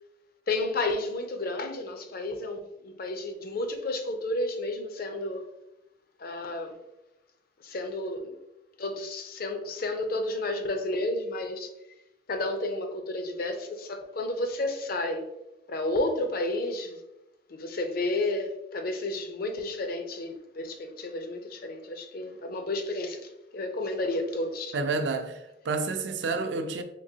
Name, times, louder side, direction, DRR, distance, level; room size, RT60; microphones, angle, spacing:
voice 1, 0.5-5.4 6.2-6.8 7.6-8.3 8.8-11.7 12.3-15.3 15.7-17.0 17.5-24.7, left 2 dB, 55° left, 0.5 m, -31 dB
voice 2, 24.7-26.8, right 3 dB, 70° right, 0.4 m, -29 dB
3.7 x 3.2 x 2.7 m
head